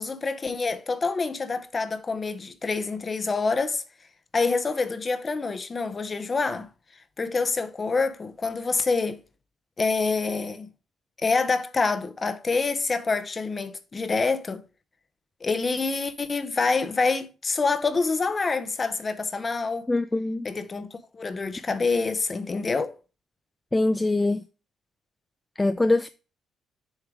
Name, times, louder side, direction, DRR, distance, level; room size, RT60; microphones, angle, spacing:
voice 1, 0.0-3.8 4.3-6.7 7.2-9.2 9.8-10.7 11.2-14.6 15.4-19.9 20.4-22.9, left 4 dB, 30° left, 0.8 m, -26 dB
voice 2, 19.9-20.5 23.7-24.4 25.6-26.1, left 2 dB, 15° left, 0.4 m, -23 dB
7.3 x 3.2 x 5.0 m
cardioid pair, 90°, 0 cm